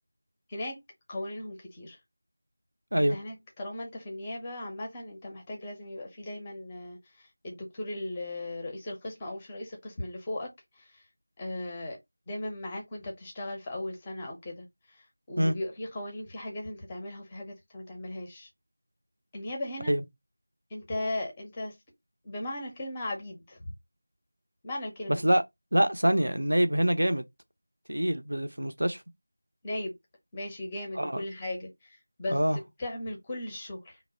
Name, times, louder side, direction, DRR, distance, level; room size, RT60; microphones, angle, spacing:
voice 1, 1.1-2.0 3.0-10.5 10.8-11.0 11.4-12.0 12.3-15.0 15.3-18.5 19.3-20.0 20.7-21.7 22.2-23.6 24.6-25.2 29.6-29.9 30.3-34.0, left 1 dB, 10° left, 0.6 m, -37 dB
voice 2, 25.1-25.4 25.7-27.2 27.9-29.0 31.0-31.2 32.3-32.6, equal, 70° right, 0.6 m, -25 dB
2.9 x 2.0 x 4.0 m
figure-of-eight pair, 170°, 0 cm